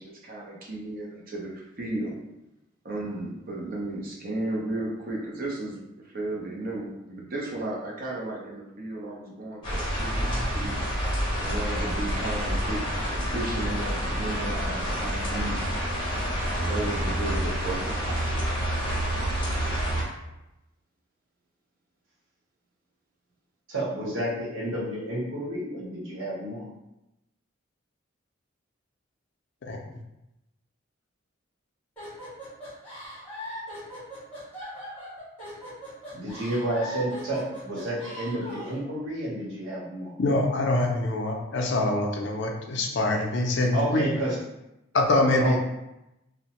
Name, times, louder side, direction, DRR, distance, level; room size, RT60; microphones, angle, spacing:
voice 1, 0.0-2.2 2.8-5.8 6.1-10.9 11.4-12.8 13.1-15.8 16.5-18.3, right 2 dB, 45° right, -3 dB, 0.6 m, -34 dB
sound 1, 9.6-20.0, equal, 25° left, 0.7 m, -28 dB
voice 2, 23.7-26.6 36.1-40.1 43.7-44.4 45.4-45.6, right 1 dB, 75° right, -5 dB, 0.9 m, -30 dB
sound 2, 32.0-38.8, equal, 10° left, 1.2 m, -40 dB
voice 3, 40.2-44.1 44.9-45.6, left 2 dB, 60° left, 1 dB, 0.4 m, -24 dB
2.8 x 2.0 x 2.9 m, 0.91 s
head